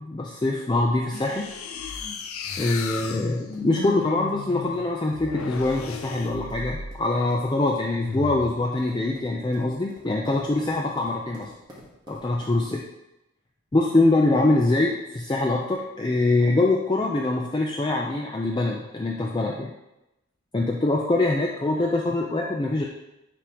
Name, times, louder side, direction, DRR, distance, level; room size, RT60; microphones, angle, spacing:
voice 1, 0.0-1.5 1.8-2.0 2.6-11.5 12.1-12.8 13.7-19.7 20.5-22.8, left 2 dB, 20° left, -1 dB, 0.4 m, -24 dB
sound 1, 1.1-7.1 7.9-8.6, left 4 dB, 85° left, 0.5 m, -35 dB
sound 2, 3.5-12.8, equal, 20° right, 1.2 m, -50 dB
9.6 x 3.5 x 2.9 m, 0.93 s
head